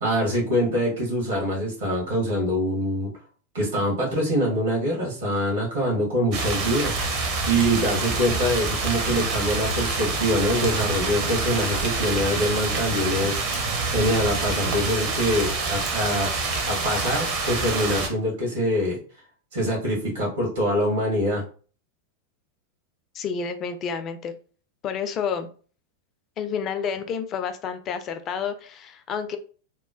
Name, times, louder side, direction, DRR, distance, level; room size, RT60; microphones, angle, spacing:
voice 1, 0.0-3.1 3.5-7.0 7.5-13.4 13.9-16.3 16.7-19.0 19.5-21.4, equal, 65° right, -3 dB, 1.2 m, -24 dB
sound 1, 6.3-18.1, right 3 dB, 40° right, 0.7 m, -26 dB
voice 2, 23.1-24.3 24.8-25.5 26.4-29.4, left 6 dB, 30° left, 8 dB, 0.4 m, -29 dB
2.9 x 2.1 x 2.4 m, 0.40 s
figure-of-eight pair, 90°, 0 cm